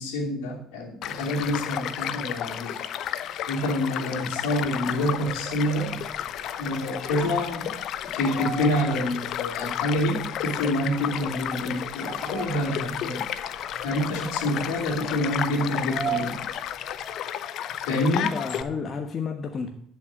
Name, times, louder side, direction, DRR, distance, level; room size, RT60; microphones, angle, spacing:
voice 1, 0.0-2.8 3.5-6.0 6.6-7.7 8.1-13.3 13.8-16.4 17.9-18.3, left 1 dB, 75° left, 1 dB, 2.6 m, -27 dB
Child speech kid speaking / Stream / Car passing by, 1.0-18.6, left 10 dB, 60° left, 0.7 m, -32 dB
sound 1, 4.8-17.3, right 6 dB, 40° right, 2.1 m, -40 dB
voice 2, 17.9-19.7, left 5 dB, 45° left, 5 dB, 1.2 m, -31 dB
10.5 x 5.8 x 8.7 m, 0.63 s
hypercardioid pair, 60°, 0 cm